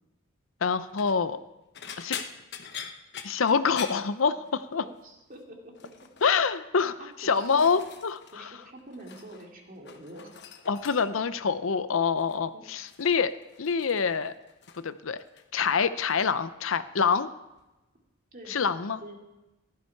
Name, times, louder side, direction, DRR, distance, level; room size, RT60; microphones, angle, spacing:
voice 1, 0.6-1.4 2.0-2.2 3.2-4.8 6.2-8.5 10.7-13.3 13.6-14.3 14.8-15.2 15.5-17.3 18.5-19.0, left 5 dB, 85° left, 13 dB, 0.7 m, -26 dB
sound 1, 0.8-1.2 1.7-4.8 5.1-5.4 5.8-6.3 6.9-8.4 8.6-9.5 9.8-11.3 12.2-12.5 12.9-14.9 15.2-15.7 16.1-16.3 17.6-17.7, left 7 dB, 60° left, 1.1 m, -43 dB
voice 2, 4.8-5.9 7.0-7.6 8.3-10.4 12.5-12.6 18.3-19.2, right 1 dB, 45° right, 1 dB, 2.6 m, -46 dB
15.0 x 12.5 x 4.6 m, 1.0 s
head